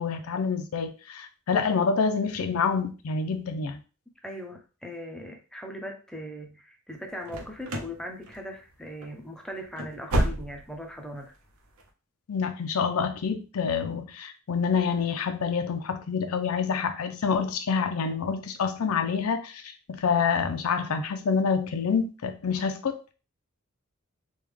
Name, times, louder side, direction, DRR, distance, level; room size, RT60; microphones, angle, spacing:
voice 1, 0.0-3.8 12.3-23.1, left 5 dB, 90° left, 7 dB, 0.5 m, -27 dB
voice 2, 4.2-11.3, equal, 5° left, 2 dB, 0.6 m, -39 dB
sound 1, 7.3-8.0 8.3-8.7 9.0-9.2 9.6-10.9 11.2-11.3 11.8-11.9, right 1 dB, 85° right, 0.7 m, -30 dB
3.4 x 2.3 x 3.2 m, 0.33 s
head